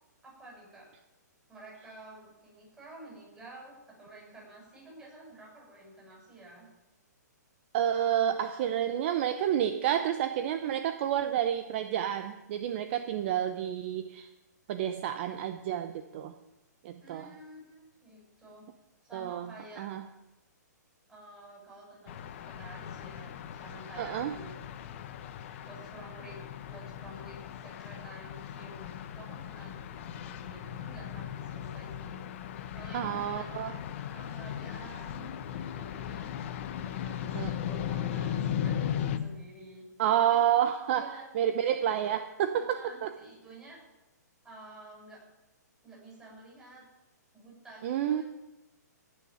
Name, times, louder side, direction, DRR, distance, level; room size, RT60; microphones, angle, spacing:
voice 1, 0.2-0.9 1.5-6.7 17.0-18.7 19.0-19.9 21.1-24.8 25.7-26.4 26.6-32.2 32.7-36.3 36.8-39.9 40.2-40.6 40.9-41.3 42.5-43.8 44.4-45.3 45.8-46.9 47.3-48.2, right 1 dB, 10° right, -4 dB, 6.7 m, -50 dB
voice 2, 7.7-14.3 14.7-16.3 16.8-17.3 19.1-19.5 19.8-20.0 24.0-24.3 32.9-33.8 37.3-37.5 40.0-43.1 47.8-48.2, right 10 dB, 40° right, 9 dB, 0.8 m, -29 dB
sound 1, 22.1-39.2, left 9 dB, 40° left, 1.0 m, -37 dB
17.5 x 6.5 x 8.7 m, 0.99 s
hypercardioid pair, 155°, 10 cm